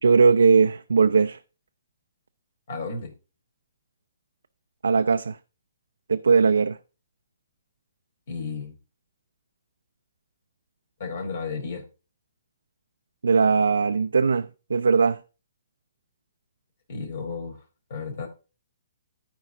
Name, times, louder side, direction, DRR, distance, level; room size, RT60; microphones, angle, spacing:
voice 1, 0.0-1.4 4.8-5.4 6.1-6.8 13.2-15.2, right 5 dB, 85° right, 0.5 m, -19 dB
voice 2, 2.7-3.1 8.3-8.8 11.0-11.9 16.9-17.6 17.9-18.3, left 4 dB, 60° left, 4.2 m, -33 dB
13.5 x 4.8 x 3.7 m
hypercardioid pair, 145°, 0 cm